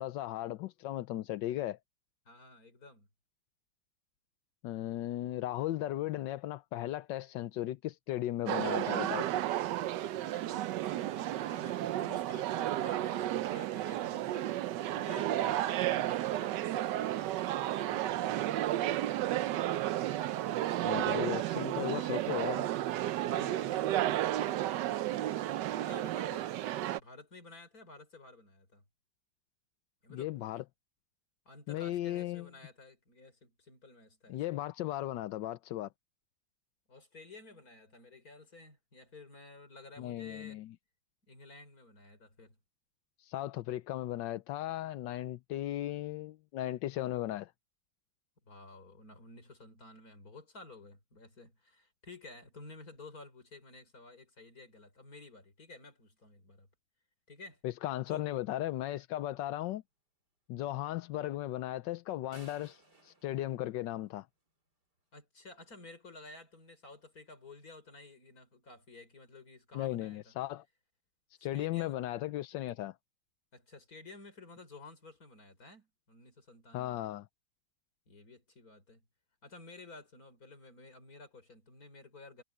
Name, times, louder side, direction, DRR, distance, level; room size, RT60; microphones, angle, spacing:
voice 1, 0.0-1.8 4.6-9.3 20.8-22.7 30.1-30.6 31.7-32.5 34.3-35.9 40.0-40.7 43.2-47.5 57.6-59.8 60.5-64.3 69.7-70.6 71.4-73.0 76.7-77.2, left 14 dB, 85° left, 1.4 m, -36 dB
voice 2, 2.3-3.1 10.1-19.0 23.2-24.9 25.8-26.5 26.9-28.8 30.0-30.3 31.5-34.6 36.9-40.6 41.3-42.6 48.4-56.7 57.3-57.6 58.1-58.3 65.1-70.3 71.4-72.0 73.5-77.0 78.1-79.1 79.4-82.4, left 3 dB, 55° left, 5.2 m, -53 dB
sound 1, 8.5-27.0, right 13 dB, 80° right, 1.3 m, -32 dB
sound 2, 62.3-64.5, right 2 dB, 65° right, 5.4 m, -59 dB
omnidirectional pair, 1.9 m